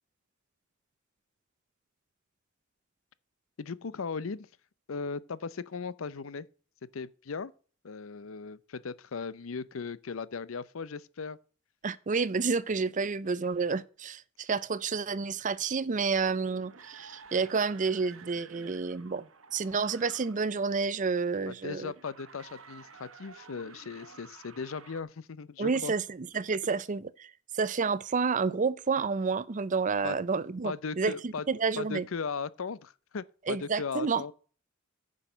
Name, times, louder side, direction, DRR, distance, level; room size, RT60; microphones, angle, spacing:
voice 1, 3.6-4.5 4.9-6.5 6.9-7.5 7.8-11.4 21.5-25.9 30.0-30.2 30.6-31.5 31.8-34.3, left 5 dB, 75° left, 0.6 m, -37 dB
voice 2, 11.8-21.9 25.6-32.1 33.5-34.2, right 4 dB, 40° right, 0.5 m, -30 dB
sound 1, 16.3-20.6 21.9-25.0, right 5 dB, 85° right, 1.2 m, -52 dB
10.0 x 6.3 x 5.1 m
head